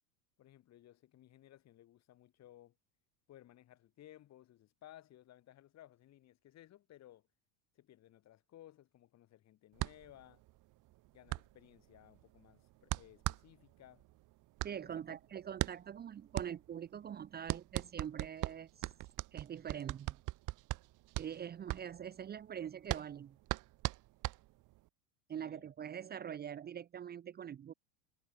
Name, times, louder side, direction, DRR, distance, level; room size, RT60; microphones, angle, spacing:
voice 1, 0.4-2.8 3.3-7.3 7.8-10.4 11.1-14.0 14.7-15.2 25.4-25.7, left 13 dB, 40° left, 6.9 m, -59 dB
sound 1, 9.8-24.9, right 19 dB, 50° right, 2.6 m, -41 dB
voice 2, 14.6-18.9 19.3-20.2 21.2-23.4 25.3-27.7, right 9 dB, 25° right, 1.1 m, -44 dB
supercardioid pair, 125°, 41 cm